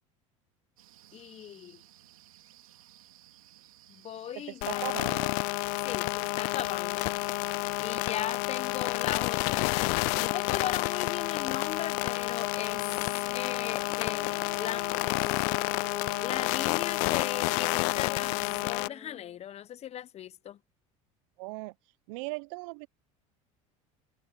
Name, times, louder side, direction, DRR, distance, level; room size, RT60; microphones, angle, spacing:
sound 1, 0.8-17.0, right 14 dB, 85° right, 3.2 m, -57 dB
voice 1, 1.1-1.8 3.9-4.9 5.8-7.1 7.8-12.8 13.3-15.2 16.2-20.6, left 10 dB, 40° left, 0.9 m, -38 dB
voice 2, 4.3-5.4 7.7-7.9 21.4-21.7 22.1-22.9, right 26 dB, 70° right, 0.7 m, -38 dB
sound 2, 4.6-18.9, left 32 dB, 65° left, 0.4 m, -30 dB
sound 3, 12.5-19.4, left 1 dB, 5° left, 1.7 m, -49 dB
hypercardioid pair, 85°, 17 cm